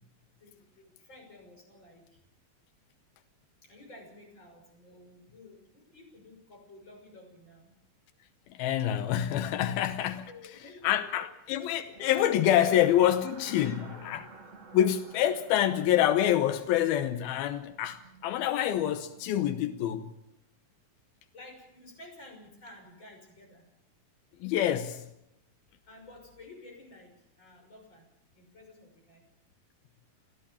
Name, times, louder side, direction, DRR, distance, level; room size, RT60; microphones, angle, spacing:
voice 1, 0.4-2.2 3.6-7.7 9.7-9.9 10.3-11.3 12.5-12.8 13.6-14.0 21.3-23.6 25.9-28.1 28.3-29.2, left 2 dB, 30° left, 6.8 m, -52 dB
voice 2, 8.5-10.3 10.8-14.3 14.7-20.1 24.4-25.0, left 11 dB, 85° left, 2.9 m, -26 dB
sound 1, 11.9-19.9, right 4 dB, 30° right, 1.6 m, -52 dB
30.0 x 14.0 x 7.2 m
omnidirectional pair, 4.2 m